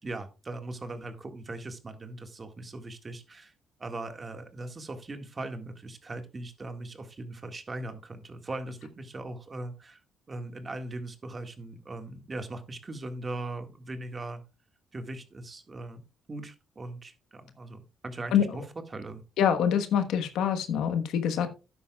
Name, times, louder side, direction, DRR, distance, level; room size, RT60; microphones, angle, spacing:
voice 1, 0.0-3.5 3.8-10.0 10.3-14.4 14.9-16.0 16.3-18.6 18.9-19.2, right 2 dB, 30° right, 7 dB, 1.8 m, -39 dB
voice 2, 19.4-21.5, left 8 dB, 85° left, 7 dB, 1.2 m, -25 dB
12.5 x 10.0 x 2.3 m, 0.30 s
cardioid pair, 90°, 0 cm